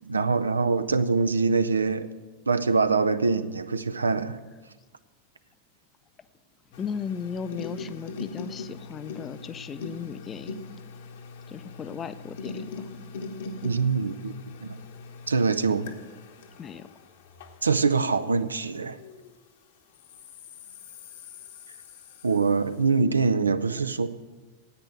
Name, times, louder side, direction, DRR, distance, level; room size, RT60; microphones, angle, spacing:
voice 1, 0.0-2.1 2.5-4.4 13.6-14.8 15.3-15.9 17.6-19.0 22.2-24.1, right 4 dB, 75° right, 11 dB, 0.5 m, -24 dB
sound 1, 6.7-19.4 19.9-22.8, left 4 dB, 55° left, 1.2 m, -42 dB
voice 2, 6.8-10.5 11.5-12.9 16.6-16.9, left 7 dB, 25° left, 13 dB, 0.6 m, -36 dB
10.0 x 8.9 x 7.8 m, 1.3 s
figure-of-eight pair, 90°, 0 cm